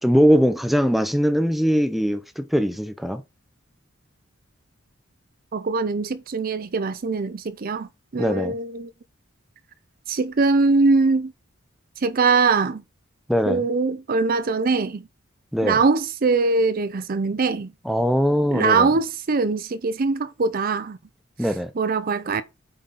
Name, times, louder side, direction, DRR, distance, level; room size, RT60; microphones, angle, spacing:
voice 1, 0.0-3.2 8.2-8.5 13.3-13.6 15.5-15.8 17.8-18.9 21.4-21.7, equal, ahead, 0.6 m, -21 dB
voice 2, 5.5-8.9 10.1-11.3 12.0-12.8 13.5-15.0 15.6-17.7 18.5-21.0 21.8-22.4, right 4 dB, 45° right, 0.5 m, -22 dB
8.9 x 3.9 x 4.1 m
head